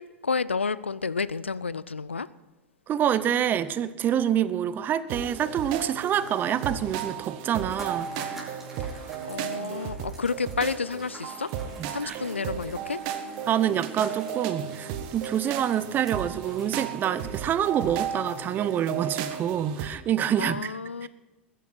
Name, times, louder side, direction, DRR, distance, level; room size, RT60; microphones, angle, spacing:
voice 1, 0.0-2.3 8.8-11.5 11.9-13.0 20.4-21.1, left 5 dB, 85° left, 18 dB, 0.5 m, -31 dB
voice 2, 2.9-8.6 9.6-9.8 11.8-12.2 13.5-21.1, right 10 dB, 30° right, 16 dB, 0.8 m, -27 dB
sound 1, 5.1-19.9, right 8 dB, 50° right, 1.4 m, -35 dB
sound 2, 7.6-17.4, right 1 dB, 5° right, 4.9 m, -48 dB
20.5 x 10.0 x 4.3 m, 1.2 s
figure-of-eight pair, 85°, 6 cm